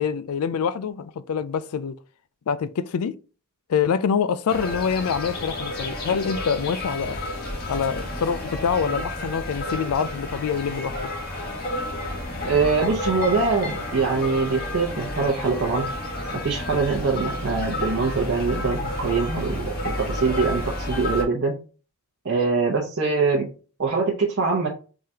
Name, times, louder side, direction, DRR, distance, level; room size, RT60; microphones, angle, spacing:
voice 1, 0.0-2.0 2.5-3.1 3.7-7.2 7.7-11.0, left 6 dB, 75° left, 0.4 m, -25 dB
sound 1, 4.5-21.2, left 1 dB, 45° left, 1.6 m, -31 dB
voice 2, 12.5-15.9 16.4-21.6 22.2-23.5 23.8-24.7, right 4 dB, 55° right, 0.9 m, -23 dB
4.9 x 3.7 x 2.8 m
head